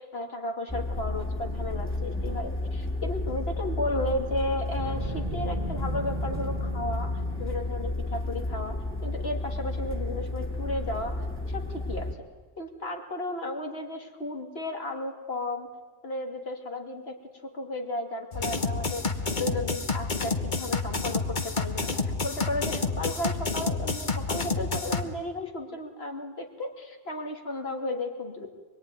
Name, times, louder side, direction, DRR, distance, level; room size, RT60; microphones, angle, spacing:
voice 1, 0.0-7.1 7.4-12.1 12.6-15.7 16.0-19.1 19.4-28.5, left 1 dB, 75° left, 2 dB, 2.8 m, -34 dB
sound 1, 0.7-12.1, left 2 dB, 10° left, 2.2 m, -32 dB
Boom, 4.8-7.8, right 3 dB, 40° right, 1.4 m, -37 dB
sound 2, 18.3-25.0, left 3 dB, 50° left, 1.5 m, -29 dB
25.0 x 22.5 x 9.6 m, 1.4 s
omnidirectional pair, 1.1 m